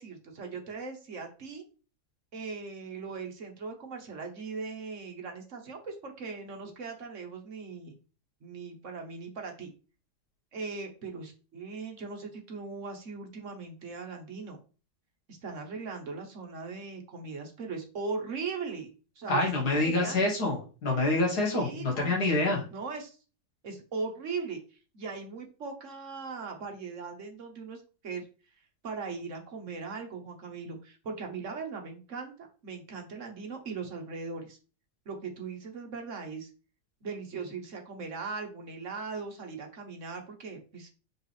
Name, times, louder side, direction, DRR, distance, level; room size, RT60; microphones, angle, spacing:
voice 1, 0.0-1.6 2.3-8.0 8.4-9.7 10.5-14.6 15.3-18.9 19.2-20.2 21.4-22.2 22.7-23.2 23.6-24.6 24.9-28.3 28.8-34.6 35.0-36.5 37.0-40.9, right 4 dB, 55° right, 3 dB, 1.4 m, -39 dB
voice 2, 19.3-22.6, left 2 dB, 90° left, -1 dB, 2.5 m, -27 dB
6.3 x 4.5 x 3.2 m, 0.36 s
omnidirectional pair, 1.6 m